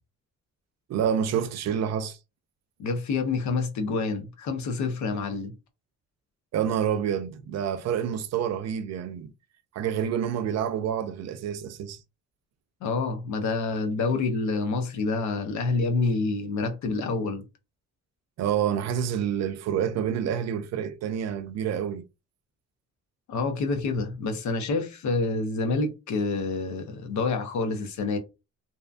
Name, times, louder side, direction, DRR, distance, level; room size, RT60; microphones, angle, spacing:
voice 1, 0.9-2.2 6.5-9.3 9.7-12.0 18.4-22.0, right 8 dB, 60° right, 0.4 m, -28 dB
voice 2, 2.8-5.5 12.8-17.4 23.3-28.2, left 3 dB, 70° left, 0.8 m, -27 dB
2.7 x 2.2 x 2.4 m
cardioid pair, 90°, 30 cm